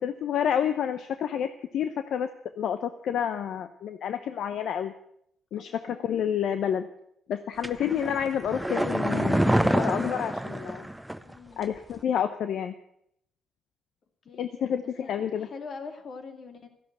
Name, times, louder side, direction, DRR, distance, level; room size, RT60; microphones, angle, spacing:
voice 1, 0.0-2.3 2.6-4.9 5.5-6.9 7.3-10.9 11.6-12.7 14.4-15.5, left 9 dB, 70° left, 10 dB, 0.8 m, -29 dB
voice 2, 5.6-6.3 11.2-11.7 14.2-16.7, left 4 dB, 50° left, 7 dB, 2.3 m, -44 dB
sound 1, 7.6-11.3 11.6-11.7, right 1 dB, 5° right, 0.8 m, -26 dB
14.0 x 11.0 x 7.9 m, 0.73 s
cardioid pair, 90°, 0 cm